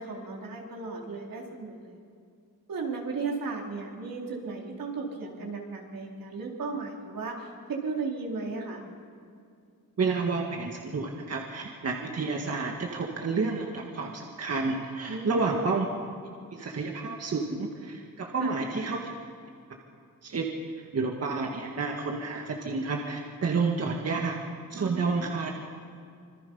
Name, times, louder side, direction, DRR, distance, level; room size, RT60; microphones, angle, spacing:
voice 1, 0.0-2.0 2.7-8.8 15.1-15.6 18.4-18.6 24.8-25.3, right 4 dB, 85° right, -1 dB, 4.2 m, -35 dB
voice 2, 10.0-15.9 16.5-19.1 20.2-20.5 20.9-24.3 24.7-25.5, right 4 dB, 50° right, 1 dB, 1.9 m, -30 dB
26.5 x 24.5 x 5.6 m, 2.3 s
wide cardioid pair, 155°, 33 cm